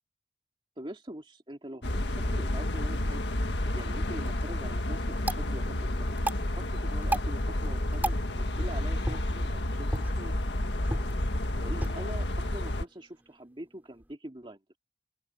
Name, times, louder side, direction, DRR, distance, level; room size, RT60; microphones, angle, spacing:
voice 1, 0.8-9.9 10.2-10.3 11.6-14.6, right 1 dB, 30° right, 2.4 m, -44 dB
sound 1, 1.8-12.8, left 1 dB, 80° left, 1.7 m, -30 dB
sound 2, 4.2-14.2, right 1 dB, 10° right, 3.2 m, -39 dB
open air
head